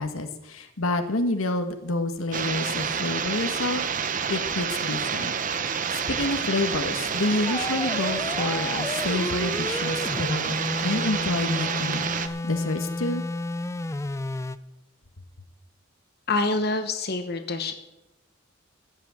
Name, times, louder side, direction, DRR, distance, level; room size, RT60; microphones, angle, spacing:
voice 1, 0.0-3.8 4.3-5.3 5.9-12.1 12.4-13.2, left 2 dB, 85° left, 7 dB, 1.3 m, -28 dB
sound 1, 2.3-12.3, right 6 dB, 40° right, 0.7 m, -28 dB
sound 2, 7.5-14.6, left 2 dB, 15° left, 0.3 m, -32 dB
voice 2, 16.3-17.7, left 3 dB, 50° left, 7 dB, 1.2 m, -26 dB
15.0 x 6.0 x 8.5 m, 0.92 s
head